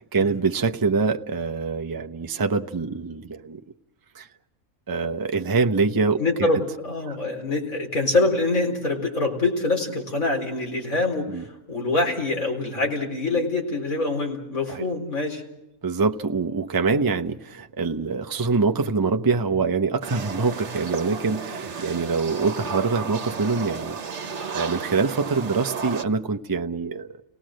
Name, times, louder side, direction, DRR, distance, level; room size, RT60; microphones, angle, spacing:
voice 1, 0.0-3.6 4.1-4.3 4.9-6.5 7.1-7.2 11.3-11.4 14.7-14.9 15.8-24.0 24.5-27.1, right 4 dB, 20° right, 6 dB, 0.7 m, -24 dB
voice 2, 6.2-15.4, left 2 dB, 80° left, 1 dB, 4.8 m, -25 dB
sound 1, 20.0-26.0, right 5 dB, 60° right, 1.4 m, -33 dB
30.0 x 19.0 x 6.4 m, 0.88 s
omnidirectional pair, 1.4 m